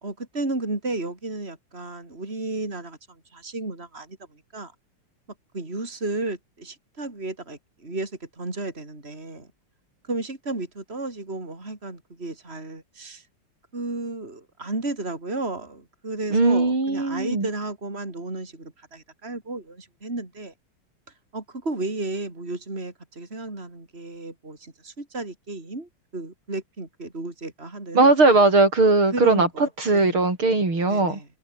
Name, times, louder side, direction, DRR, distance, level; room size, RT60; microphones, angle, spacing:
voice 1, 0.0-4.7 5.5-9.5 10.0-13.3 13.7-20.5 21.3-28.1 29.1-29.6 29.9-30.2 30.9-31.3, right 2 dB, 25° right, 5.2 m, -33 dB
voice 2, 16.3-17.5 27.9-31.2, right 3 dB, 70° right, 7.0 m, -19 dB
omnidirectional pair, 2.4 m